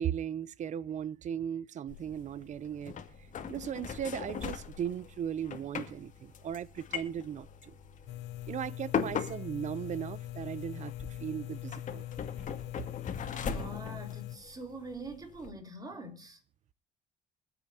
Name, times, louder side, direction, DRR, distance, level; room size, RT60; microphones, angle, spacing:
voice 1, 0.0-3.0 3.5-7.8 8.5-12.0, right 9 dB, 45° right, 0.6 m, -37 dB
sound 1, 1.9-15.5, left 7 dB, 50° left, 2.2 m, -40 dB
sound 2, 8.1-14.4, left 15 dB, 80° left, 0.5 m, -42 dB
voice 2, 13.3-16.4, right 2 dB, 20° right, 3.5 m, -44 dB
24.0 x 8.1 x 2.8 m
cardioid pair, 110°, 17 cm